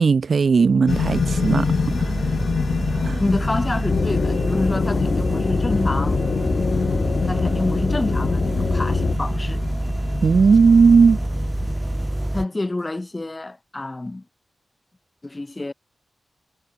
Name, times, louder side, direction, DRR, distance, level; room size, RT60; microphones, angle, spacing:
voice 1, 0.0-1.7 2.0-2.2 3.0-3.2 10.2-11.2, right 5 dB, 60° right, 0.6 m, -16 dB
sound 1, 0.9-12.3, left 6 dB, 75° left, 3.7 m, -28 dB
sound 2, 0.9-12.5, right 1 dB, 10° right, 2.5 m, -26 dB
voice 2, 3.2-6.2 7.3-9.6 12.3-14.2 15.2-15.7, left 2 dB, 25° left, 6.4 m, -27 dB
sound 3, 3.9-9.2, left 5 dB, 60° left, 1.1 m, -24 dB
wide cardioid pair, 90°, 0 cm